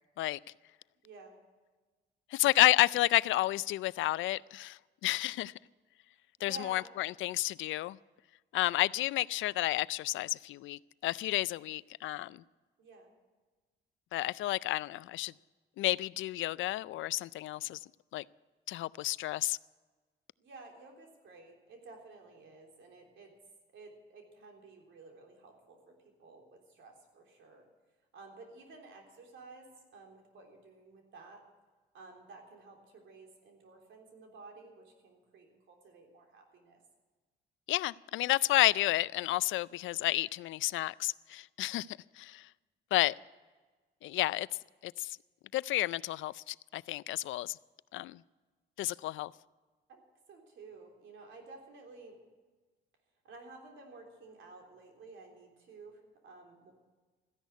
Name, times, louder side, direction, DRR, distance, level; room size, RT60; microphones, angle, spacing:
voice 1, 1.0-1.4 6.4-6.9 12.8-13.1 20.4-23.3 23.7-27.7 28.1-31.4 31.9-36.8 39.7-40.0 49.9-50.0 50.3-52.2 53.2-56.7, right 3 dB, 75° right, 3.5 m, -53 dB
voice 2, 2.3-5.5 6.4-8.0 8.5-12.4 14.1-15.3 15.8-17.8 18.1-18.2 18.7-19.6 37.7-42.5 42.9-43.1 44.0-44.5 44.8-45.2 45.5-47.6 47.9-48.2 48.8-49.3, left 16 dB, 75° left, 0.4 m, -31 dB
14.5 x 10.5 x 8.1 m
cardioid pair, 90°, 20 cm